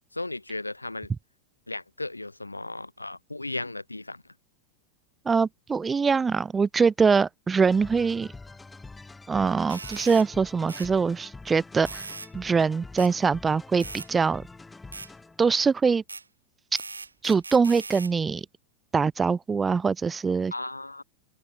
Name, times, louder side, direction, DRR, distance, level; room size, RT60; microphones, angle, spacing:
voice 1, 0.2-1.1 1.7-4.2 20.5-21.0, left 2 dB, 85° left, 1.0 m, -35 dB
voice 2, 5.3-8.3 9.3-12.1 12.3-14.4 15.4-16.0 17.2-18.5 18.9-20.5, right 5 dB, 15° right, 0.7 m, -23 dB
sound 1, 7.6-15.6, left 3 dB, 10° left, 1.5 m, -46 dB
sound 2, 9.7-10.3 10.7-10.9 11.9-12.3 13.0-13.1 13.8-14.1 14.9-15.1 16.1-16.2 16.8-18.1, right 4 dB, 80° right, 2.1 m, -39 dB
figure-of-eight pair, 90°, 0 cm